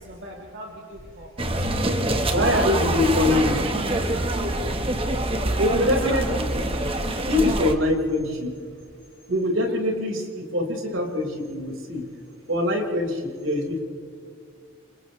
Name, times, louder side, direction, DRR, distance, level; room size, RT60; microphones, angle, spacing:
voice 1, 0.0-1.8 2.7-3.8 4.1-4.9 5.8-6.2 9.6-9.8, right 1 dB, 60° right, -2 dB, 2.9 m, -37 dB
sound 1, 1.4-7.7, right 1 dB, 30° right, 1.4 m, -25 dB
voice 2, 2.2-3.6 5.6-6.2 7.3-8.5 9.3-12.0 12.5-13.8, left 1 dB, 80° right, 0 dB, 5.1 m, -23 dB
28.5 x 28.5 x 3.3 m, 2.2 s
head